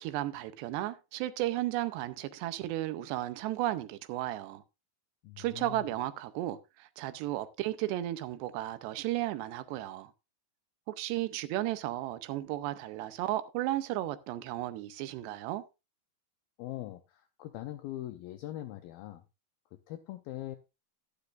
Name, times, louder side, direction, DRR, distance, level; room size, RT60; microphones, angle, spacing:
voice 1, 0.0-4.6 5.4-10.1 10.9-15.6, right 15 dB, 80° right, 2.9 m, -34 dB
voice 2, 5.2-5.9 16.6-19.2 19.7-20.6, left 14 dB, 85° left, 2.1 m, -42 dB
12.0 x 12.0 x 2.5 m
omnidirectional pair, 5.0 m